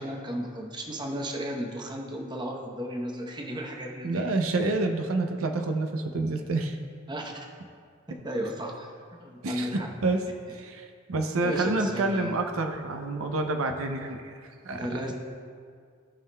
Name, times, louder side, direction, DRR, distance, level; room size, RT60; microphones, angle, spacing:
voice 1, 0.0-4.3 7.1-7.5 8.1-8.9 9.2-9.9 11.4-12.3 14.7-15.1, equal, 20° right, 1 dB, 0.8 m, -34 dB
voice 2, 4.0-6.8 9.4-10.2 10.5-14.4 14.6-15.1, right 2 dB, 80° right, 5 dB, 0.6 m, -28 dB
16.0 x 5.6 x 2.2 m, 2.1 s
head